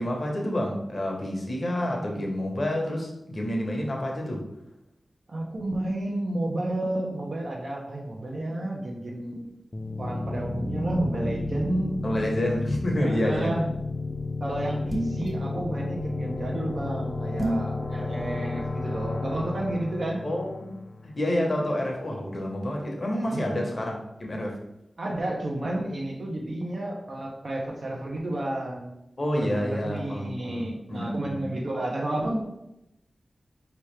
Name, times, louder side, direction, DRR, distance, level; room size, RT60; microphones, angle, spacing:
voice 1, 0.0-4.5 12.0-13.5 20.2-24.6 29.2-31.5, left 1 dB, 40° left, 0 dB, 0.9 m, -29 dB
voice 2, 5.3-9.5 10.0-12.0 13.0-13.7 14.4-20.3 23.3-23.6 25.0-29.0 29.4-32.4, right 1 dB, 60° right, -1 dB, 0.7 m, -31 dB
sound 1, 9.7-21.3, left 3 dB, 25° left, 0.3 m, -32 dB
sound 2, 14.9-15.3 17.4-17.7, right 1 dB, 20° right, 0.9 m, -28 dB
4.7 x 3.0 x 3.2 m, 0.86 s
wide cardioid pair, 105°, 0 cm